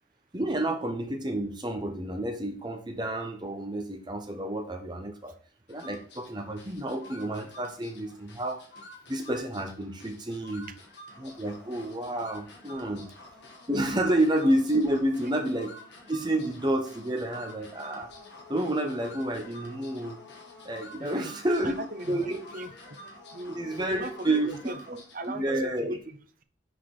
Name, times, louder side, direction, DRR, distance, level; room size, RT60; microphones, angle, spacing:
voice 1, 0.3-5.3 5.7-8.6 9.1-10.7 11.2-13.1 13.7-15.7 16.1-18.1 18.5-20.2 20.6-21.7 22.1-22.4 23.5-24.5 25.3-25.9, right 1 dB, 20° right, 4 dB, 1.0 m, -29 dB
sound 1, 5.7-25.4, left 1 dB, 60° left, 1.5 m, -49 dB
voice 2, 21.0-21.3 21.6-23.0 23.3-26.4, right 1 dB, 45° right, 9 dB, 0.7 m, -39 dB
5.9 x 4.5 x 4.7 m, 0.41 s
head